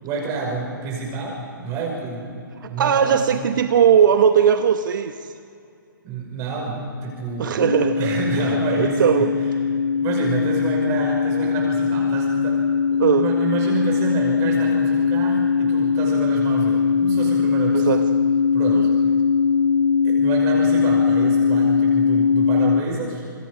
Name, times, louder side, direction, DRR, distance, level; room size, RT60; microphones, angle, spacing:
voice 1, 0.0-3.2 6.0-9.3 10.0-18.0 18.5-19.0 20.0-23.2, right 4 dB, 30° right, -1 dB, 5.8 m, -29 dB
voice 2, 2.8-5.1 7.4-9.3 13.0-13.2 17.7-18.0 18.7-18.9, right 8 dB, 65° right, 7 dB, 1.2 m, -19 dB
sound 1, 7.6-22.8, left 5 dB, 75° left, 0.6 m, -20 dB
27.0 x 22.0 x 5.1 m, 2.4 s
hypercardioid pair, 140°, 11 cm